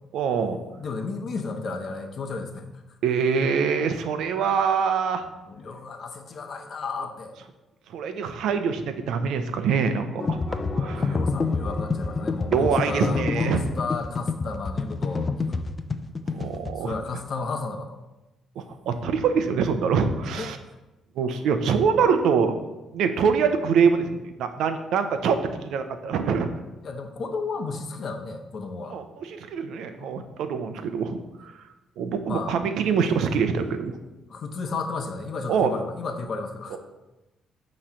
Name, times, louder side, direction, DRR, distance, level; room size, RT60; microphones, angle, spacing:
voice 1, 0.1-0.6 3.0-5.3 7.9-11.2 12.5-13.6 16.3-17.0 18.6-20.6 21.2-22.6 22.9-26.5 28.9-31.2 32.0-34.0 35.5-35.7 36.7-36.8, right 6 dB, 80° right, 8 dB, 0.7 m, -24 dB
voice 2, 0.8-2.6 5.5-7.4 10.6-15.7 16.8-18.0 20.2-20.6 21.4-21.5 25.2-25.3 26.4-29.0 30.0-30.3 32.3-32.6 34.3-36.8, left 4 dB, 55° left, 6 dB, 0.9 m, -33 dB
sound 1, 10.2-16.7, left 4 dB, 35° left, 0.5 m, -27 dB
8.6 x 3.2 x 5.8 m, 1.0 s
cardioid pair, 90°, 0 cm